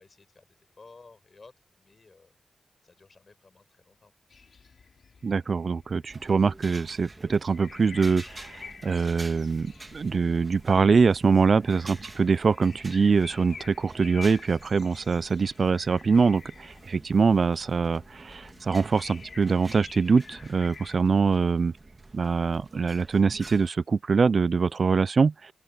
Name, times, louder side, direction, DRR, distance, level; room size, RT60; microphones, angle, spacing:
voice 1, 0.0-2.3 2.8-4.1, left 3 dB, 45° left, 5.9 m, -55 dB
sound 1, 4.3-21.0, left 5 dB, 70° left, 3.1 m, -49 dB
voice 2, 5.2-21.7 22.1-25.5, right 5 dB, 60° right, 0.3 m, -24 dB
sound 2, 6.1-23.7, right 2 dB, 30° right, 2.1 m, -49 dB
open air
cardioid pair, 65°, 0 cm